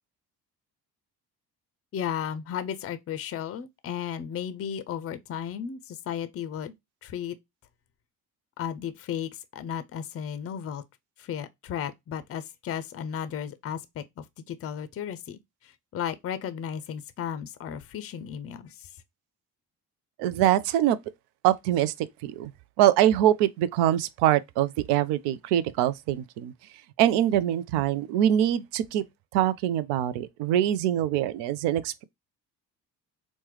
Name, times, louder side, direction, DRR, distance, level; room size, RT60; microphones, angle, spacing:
voice 1, 1.9-6.7 7.0-7.4 8.6-10.8 11.2-15.4 15.6-18.9, left 9 dB, 30° left, 0.5 m, -34 dB
voice 2, 20.2-21.0 21.4-22.5 22.8-26.5 27.0-29.0 29.3-32.0, right 12 dB, 55° right, 0.5 m, -24 dB
4.4 x 2.1 x 3.0 m
figure-of-eight pair, 45°, 50 cm